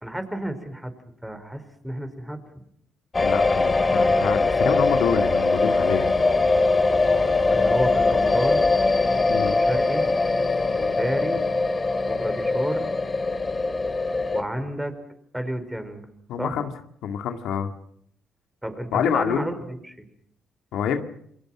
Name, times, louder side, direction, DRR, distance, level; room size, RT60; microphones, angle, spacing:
voice 1, 0.0-0.9 1.2-2.4 7.5-8.6 9.4-10.1 10.8-11.4 12.1-12.9 14.3-14.9 15.3-16.0 16.4-16.5 18.6-20.1, right 1 dB, 5° right, 9 dB, 4.9 m, -31 dB
sound 1, 3.1-14.4, left 3 dB, 25° left, 2.3 m, -21 dB
voice 2, 3.2-6.1 9.3-9.6 16.3-16.7 17.0-17.7 18.9-19.5 20.7-21.0, left 8 dB, 80° left, 6 dB, 2.2 m, -26 dB
28.5 x 22.5 x 6.1 m, 0.66 s
cardioid pair, 90°, 0 cm